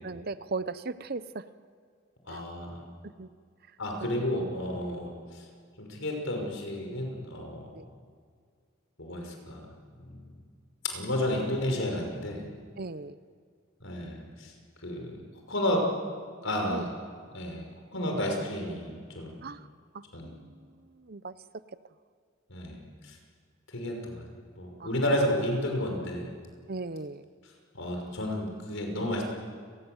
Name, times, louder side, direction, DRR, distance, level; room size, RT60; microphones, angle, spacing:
voice 1, 0.0-1.4 2.3-2.4 3.0-3.3 4.2-4.3 4.9-5.0 7.7-7.9 12.8-13.2 16.7-16.9 19.4-19.7 19.9-21.3 24.8-24.9 26.7-27.3 29.0-29.1, right 3 dB, 50° right, 14 dB, 0.8 m, -38 dB
voice 2, 2.3-2.8 3.8-5.4 5.8-7.7 9.0-9.6 10.0-10.2 10.8-12.4 13.8-14.5 14.8-15.1 15.5-15.8 16.4-16.9 17.3-17.6 17.9-19.4 20.1-20.3 22.5-23.2 23.7-24.2 24.6-26.3 27.7-29.3, left 1 dB, 70° left, 2 dB, 5.9 m, -31 dB
30.0 x 19.5 x 8.0 m, 2.1 s
head